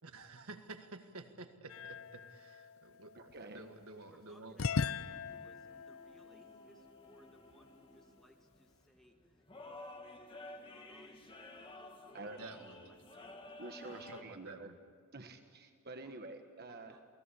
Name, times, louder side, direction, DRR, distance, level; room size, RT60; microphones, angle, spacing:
voice 1, 0.0-4.6 12.3-12.9 13.9-14.8, right 3 dB, 75° right, 7 dB, 1.7 m, -51 dB
sound 1, 1.7-3.8 4.6-7.5, left 5 dB, 65° left, 0.6 m, -41 dB
voice 2, 3.2-3.6 12.1-12.4 13.6-14.7 15.1-17.0, right 2 dB, 45° right, 6 dB, 1.4 m, -48 dB
voice 3, 3.9-9.4 10.5-11.9 12.3-13.4 16.0-16.3 16.7-17.0, equal, ahead, 2 dB, 1.9 m, -65 dB
sound 2, 5.1-14.2, left 2 dB, 25° left, 1.9 m, -53 dB
28.5 x 19.0 x 8.5 m, 2.1 s
head